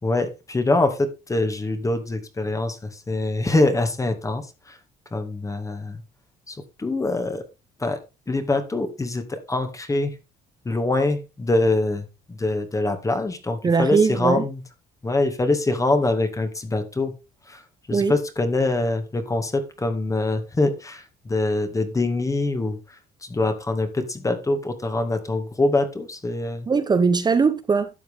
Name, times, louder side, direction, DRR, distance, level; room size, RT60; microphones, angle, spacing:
voice 1, 0.0-4.8 5.1-6.0 6.5-7.4 7.8-8.0 8.3-10.2 10.7-14.6 15.0-17.1 17.5-17.6 17.9-26.7, left 2 dB, 20° left, 2.1 m, -24 dB
voice 2, 13.6-14.4 17.9-18.1 26.7-27.9, right 5 dB, 25° right, 1.0 m, -20 dB
12.0 x 7.8 x 3.6 m
cardioid pair, 110°, 17 cm